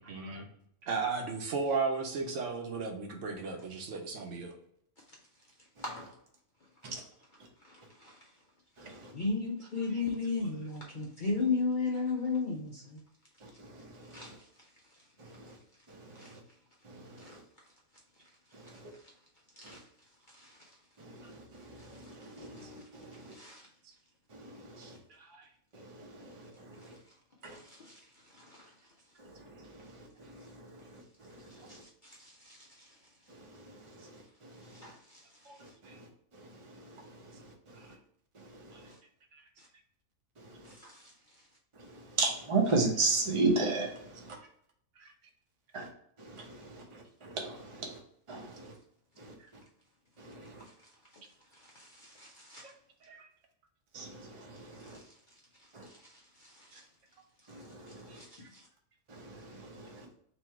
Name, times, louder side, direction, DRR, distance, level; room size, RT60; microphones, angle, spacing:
voice 1, 0.1-0.5 0.8-4.5 21.2-21.3 24.8-25.5 35.4-35.6 35.8-36.0 37.8-37.9 38.7-38.8 39.3-39.4 45.0-45.1 52.6-52.7 56.7-56.8 58.1-58.5, right 4 dB, 60° right, 1.1 m, -36 dB
voice 2, 5.8-6.2 7.6-8.3 9.1-13.0 14.1-14.5 15.5-15.6 16.1-16.4 17.2-17.4 19.6-19.8 20.3-20.7 21.8-22.9 23.3-23.7 24.8-24.9 26.8-27.0 27.5-28.7 31.5-33.0 34.6-35.7 38.9-39.0 39.6-39.7 40.6-41.1 50.6-50.7 51.1-51.2 51.5-52.7 54.7-55.1 55.6-56.9 57.6-58.6, left 4 dB, 55° left, 0.6 m, -38 dB
voice 3, 8.8-9.1 13.4-14.4 15.2-15.6 15.9-16.4 16.8-17.4 18.5-18.9 19.6-19.8 21.0-23.4 24.3-25.0 25.7-27.0 27.4-27.6 29.2-31.8 33.3-34.9 35.6-37.9 38.3-38.9 40.4-40.7 41.7-44.4 45.7-45.9 46.2-48.0 48.3-48.7 49.2-49.6 50.2-50.7 53.9-55.0 55.7-55.9 57.5-58.2 59.1-60.1, right 3 dB, 30° right, 0.6 m, -37 dB
3.1 x 2.8 x 4.5 m
omnidirectional pair, 1.5 m